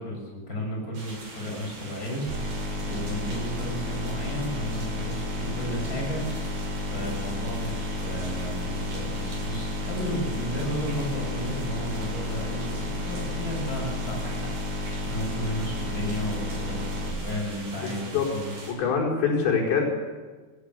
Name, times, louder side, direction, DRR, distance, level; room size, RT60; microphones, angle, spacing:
voice 1, 0.0-6.6 6.8-18.9, equal, 20° left, 0 dB, 8.2 m, -34 dB
sound 1, 0.9-18.7, right 2 dB, 70° right, 8.6 m, -42 dB
sound 2, 2.3-17.1, left 2 dB, 90° right, 6.3 m, -32 dB
voice 2, 17.8-18.3 18.8-19.9, left 6 dB, 90° left, -2 dB, 7.0 m, -24 dB
20.5 x 19.5 x 8.2 m, 1.3 s
omnidirectional pair, 4.9 m